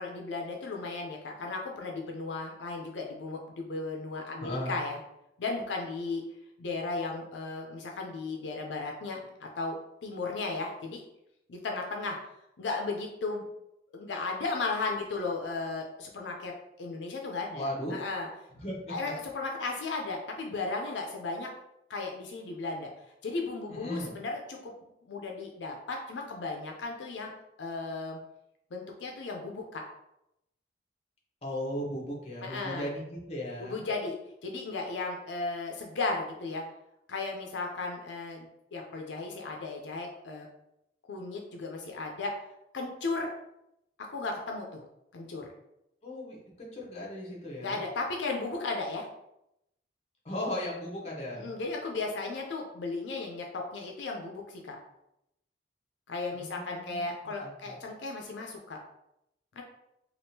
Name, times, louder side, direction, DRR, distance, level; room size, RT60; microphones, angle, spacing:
voice 1, 0.0-5.0 5.4-6.2 6.6-9.8 10.0-11.0 11.5-12.2 12.6-13.5 13.9-16.5 16.8-18.3 18.9-21.5 21.9-22.9 23.2-24.7 25.0-27.3 27.6-28.2 28.7-29.8 32.4-32.9 33.6-34.2 34.4-36.6 37.1-40.5 41.1-42.3 42.7-43.3 44.0-44.8 45.1-45.5 47.6-49.1 51.3-54.8 56.1-58.8 59.6-59.7, left 3 dB, 90° left, 1 dB, 0.5 m, -35 dB
voice 2, 4.4-4.7 17.5-18.0 18.5-18.9 23.7-24.2 31.4-33.8 46.0-47.8 50.2-51.5 56.3-57.1 57.4-57.7, left 1 dB, 35° left, -3 dB, 0.8 m, -37 dB
3.5 x 2.4 x 2.7 m, 0.84 s
head